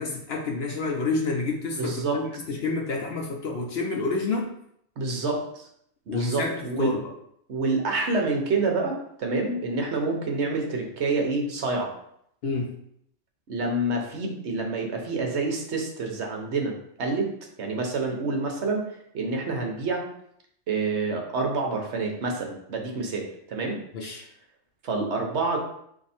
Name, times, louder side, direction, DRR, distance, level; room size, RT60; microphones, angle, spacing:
voice 1, 0.0-4.5 6.1-7.1 12.4-12.7 23.9-24.2, left 3 dB, 60° left, 1 dB, 0.8 m, -29 dB
voice 2, 1.8-2.2 5.0-5.7 6.1-6.9 7.5-11.9 13.5-17.3 17.6-18.9 19.1-20.1 20.7-23.8 24.8-25.6, right 3 dB, 60° right, 2 dB, 1.0 m, -27 dB
4.6 x 2.7 x 4.2 m, 0.71 s
omnidirectional pair, 1.4 m